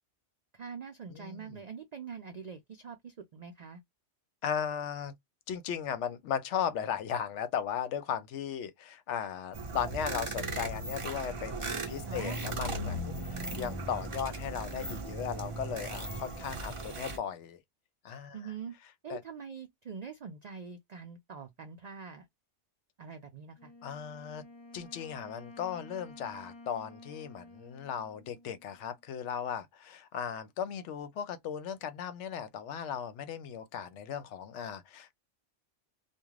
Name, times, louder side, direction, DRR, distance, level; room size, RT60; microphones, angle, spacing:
voice 1, 0.5-3.8 12.1-12.5 18.3-18.8 19.0-22.3 23.0-23.7, right 6 dB, 70° right, 0.4 m, -44 dB
voice 2, 1.1-1.6 4.4-5.1 5.5-17.6 18.0-18.5 19.1-19.2 23.8-24.4 24.7-35.1, left 8 dB, 75° left, 0.8 m, -37 dB
sound 1, 9.5-17.2, right 2 dB, 30° right, 0.7 m, -37 dB
Wind instrument woodwind instrument, 23.6-29.0, left 2 dB, 30° left, 0.5 m, -52 dB
2.4 x 2.3 x 3.0 m
omnidirectional pair, 1.3 m